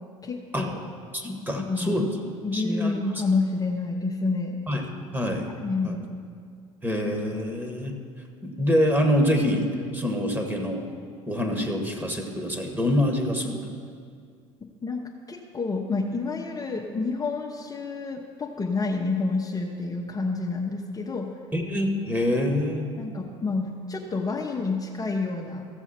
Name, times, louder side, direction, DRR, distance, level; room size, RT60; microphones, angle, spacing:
voice 1, 0.2-0.7 1.7-2.0 2.4-4.6 5.6-6.0 14.8-21.3 23.0-25.7, left 3 dB, 20° left, -1 dB, 1.0 m, -28 dB
voice 2, 1.1-2.0 2.5-3.0 4.7-4.8 5.1-5.5 5.8-6.0 6.8-7.9 8.4-9.7 9.9-10.9 11.3-13.6 21.5-22.9, left 1 dB, 10° right, 3 dB, 1.7 m, -25 dB
14.5 x 7.0 x 4.4 m, 2.2 s
hypercardioid pair, 65°, 16 cm